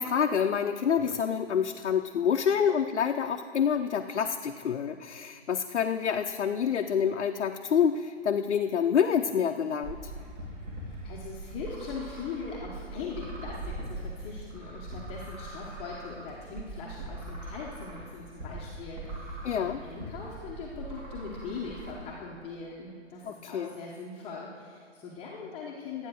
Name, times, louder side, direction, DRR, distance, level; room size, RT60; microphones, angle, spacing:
voice 1, 0.0-10.0 19.4-19.8 23.2-23.7, left 7 dB, 75° left, 3 dB, 0.7 m, -27 dB
sound 1, 9.8-21.9, right 2 dB, 40° right, 3.0 m, -41 dB
voice 2, 10.8-26.1, left 4 dB, 15° left, -4 dB, 1.0 m, -41 dB
12.5 x 8.9 x 6.3 m, 2.1 s
hypercardioid pair, 145°, 35 cm